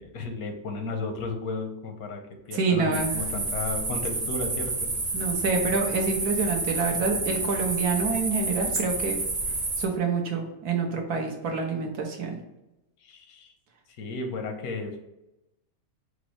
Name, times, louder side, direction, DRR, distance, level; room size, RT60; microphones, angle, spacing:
voice 1, 0.0-2.2 2.5-4.9 13.0-13.5 14.0-15.0, left 3 dB, 80° left, 4 dB, 1.2 m, -34 dB
voice 2, 2.5-3.1 5.1-9.2 9.8-12.4, right 4 dB, 85° right, 2 dB, 1.4 m, -27 dB
sound 1, 2.9-9.9, right 3 dB, 40° right, 0.8 m, -29 dB
5.2 x 2.0 x 4.5 m, 0.93 s
omnidirectional pair, 1.6 m